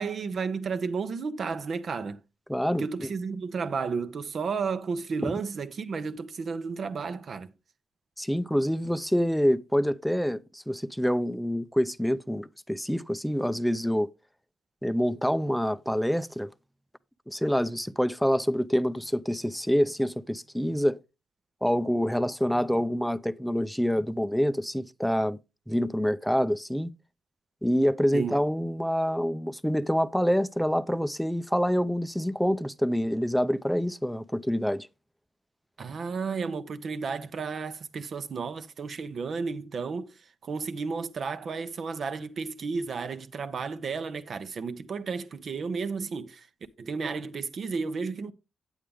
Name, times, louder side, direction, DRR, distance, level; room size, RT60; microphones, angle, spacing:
voice 1, 0.0-2.2 2.8-7.5 28.1-28.4 35.8-46.5 46.8-48.3, right 5 dB, 60° right, 0.9 m, -32 dB
voice 2, 2.5-3.1 5.2-5.3 8.2-14.1 14.8-16.5 17.3-21.0 21.6-25.4 25.7-26.9 27.6-34.9, equal, ahead, 0.6 m, -26 dB
8.8 x 8.4 x 3.6 m
hypercardioid pair, 45°, 0 cm